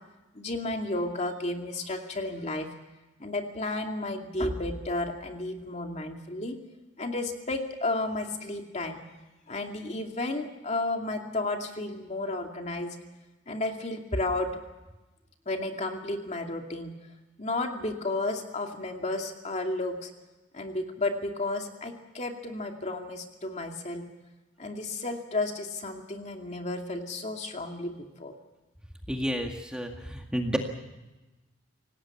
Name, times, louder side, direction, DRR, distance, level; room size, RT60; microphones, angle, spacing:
voice 1, 0.3-2.7 3.2-6.6 7.0-9.0 9.5-13.0 13.5-14.6 15.5-16.9 17.4-20.1 20.5-24.1 24.6-28.3, left 2 dB, 35° left, 3 dB, 2.5 m, -32 dB
voice 2, 29.1-30.6, equal, 5° right, 2 dB, 1.9 m, -30 dB
27.0 x 18.5 x 7.2 m, 1.1 s
head